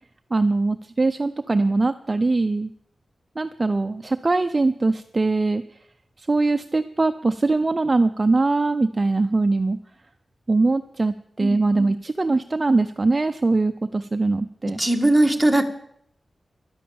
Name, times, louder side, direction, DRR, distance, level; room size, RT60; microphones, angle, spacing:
voice 1, 0.3-2.7 3.4-5.6 6.2-9.8 10.5-14.8, right 3 dB, 25° right, 8 dB, 0.5 m, -22 dB
voice 2, 14.8-15.6, right 1 dB, ahead, 2 dB, 1.6 m, -19 dB
12.0 x 10.5 x 8.6 m, 0.69 s
wide cardioid pair, 160°, 0 cm